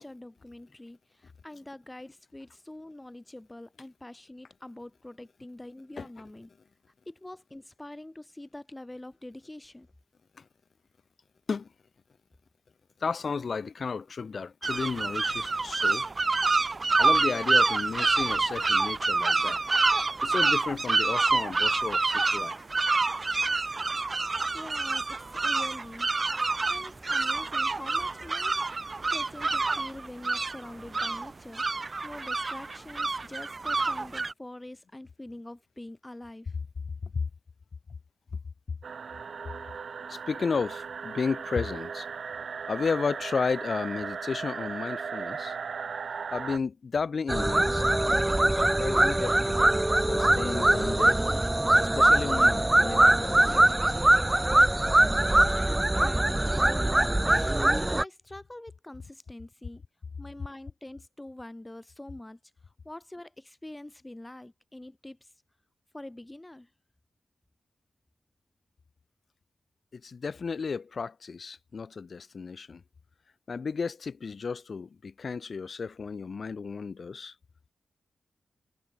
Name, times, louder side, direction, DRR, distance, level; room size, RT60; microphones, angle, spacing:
voice 1, 0.0-6.5 7.0-9.9 24.3-26.1 26.4-28.6 29.1-31.6 32.0-36.5 55.4-57.5 57.8-59.8 60.2-62.4 62.8-65.3 65.9-66.7, left 1 dB, 10° left, 3.5 m, -45 dB
voice 2, 13.0-16.1 17.0-19.6 20.2-22.7 23.0-23.7 37.0-37.1 40.1-42.1 42.7-45.6 46.3-49.6 50.0-51.2 51.8-53.7 57.3-57.5 69.9-72.8 73.5-77.3, left 5 dB, 50° left, 4.8 m, -33 dB
sound 1, 14.6-34.3, right 3 dB, 30° right, 1.7 m, -27 dB
sound 2, 38.8-46.6, right 6 dB, 60° right, 2.0 m, -37 dB
sound 3, 47.3-58.0, right 1 dB, 10° right, 0.5 m, -22 dB
wide cardioid pair, 155°, 0 cm